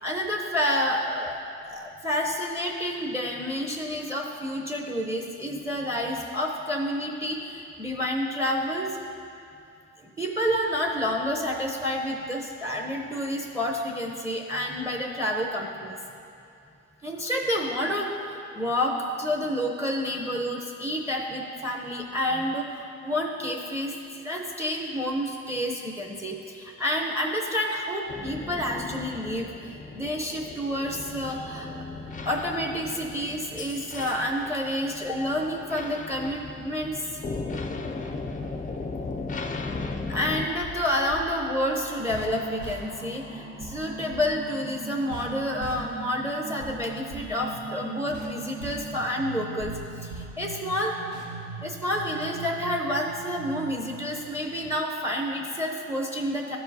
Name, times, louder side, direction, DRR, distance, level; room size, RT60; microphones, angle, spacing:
voice 1, 0.0-9.0 10.2-16.0 17.0-24.0 24.2-31.7 32.3-37.2 40.1-51.0 51.6-56.6, equal, 10° right, 1 dB, 0.7 m, -29 dB
sound 1, 28.1-40.5, left 3 dB, 25° left, 0.4 m, -36 dB
sound 2, 40.3-54.8, right 2 dB, 90° right, 1.2 m, -40 dB
12.5 x 4.8 x 2.7 m, 2.6 s
cardioid pair, 90°, 30 cm